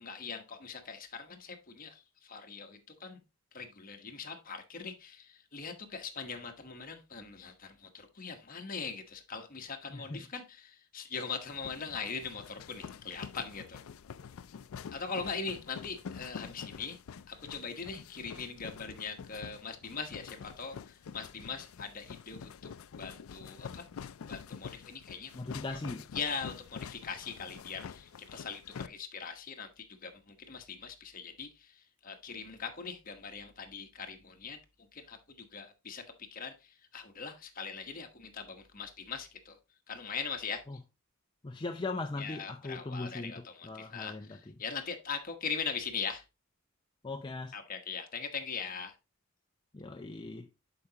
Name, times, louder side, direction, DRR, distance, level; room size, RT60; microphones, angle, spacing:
voice 1, 0.0-3.2 3.5-13.8 14.9-17.0 17.3-22.6 22.9-23.9 24.3-25.3 25.7-25.8 26.1-39.6 39.9-40.6 42.2-46.2 47.5-49.0, left 5 dB, 40° left, 1.2 m, -41 dB
voice 2, 9.9-10.2 25.3-26.1 40.7-40.8 41.4-44.5 47.0-47.6 49.7-50.5, left 2 dB, 20° left, 0.5 m, -39 dB
sound 1, 11.4-28.9, left 6 dB, 85° left, 0.4 m, -47 dB
11.0 x 4.9 x 2.8 m
head